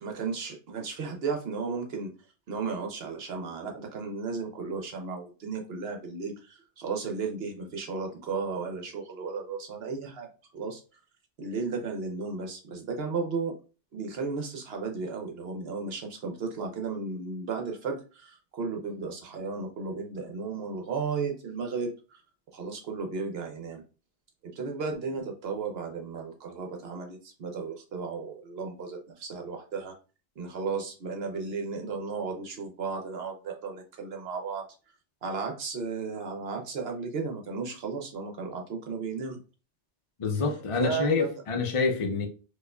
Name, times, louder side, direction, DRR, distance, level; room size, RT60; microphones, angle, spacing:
voice 1, 0.0-2.1 2.5-10.3 10.5-10.8 11.4-13.5 13.9-22.2 22.5-23.8 24.6-29.9 30.4-34.6 35.2-39.4 40.7-41.3, right 4 dB, 65° right, 0.9 m, -34 dB
voice 2, 40.2-42.3, left 4 dB, 45° left, 0.4 m, -27 dB
4.6 x 2.4 x 2.2 m
omnidirectional pair, 1.2 m